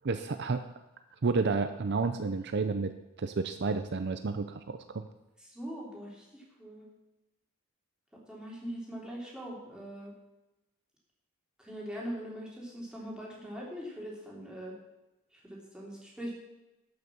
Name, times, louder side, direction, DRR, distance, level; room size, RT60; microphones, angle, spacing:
voice 1, 0.0-0.6 1.2-2.9 3.2-5.0, right 4 dB, 50° right, 9 dB, 0.5 m, -30 dB
voice 2, 5.4-6.8 8.3-10.1 11.6-14.7 15.3-16.3, equal, 5° right, -4 dB, 3.2 m, -42 dB
12.0 x 6.6 x 7.3 m, 0.98 s
head